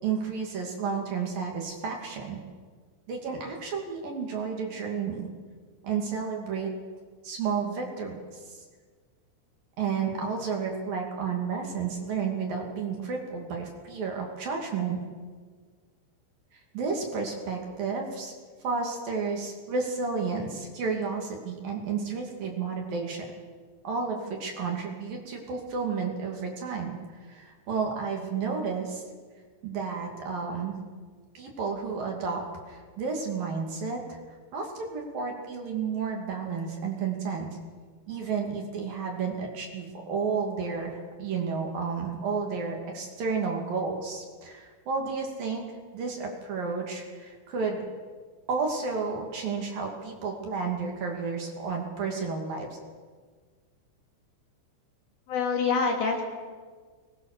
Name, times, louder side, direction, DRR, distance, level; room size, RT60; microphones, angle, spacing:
voice 1, 0.0-2.4 3.1-5.3 5.8-6.7 7.2-8.6 9.8-15.0 16.5-18.3 18.6-23.3 23.8-27.0 27.3-29.0 29.6-30.8 31.3-34.2 34.5-37.5 38.1-45.6 45.9-47.8 48.5-52.8, right 5 dB, 50° right, 1 dB, 3.9 m, -31 dB
voice 2, 55.3-56.2, left 5 dB, 55° left, 1 dB, 4.4 m, -25 dB
24.0 x 21.0 x 6.7 m, 1.5 s
omnidirectional pair, 5.5 m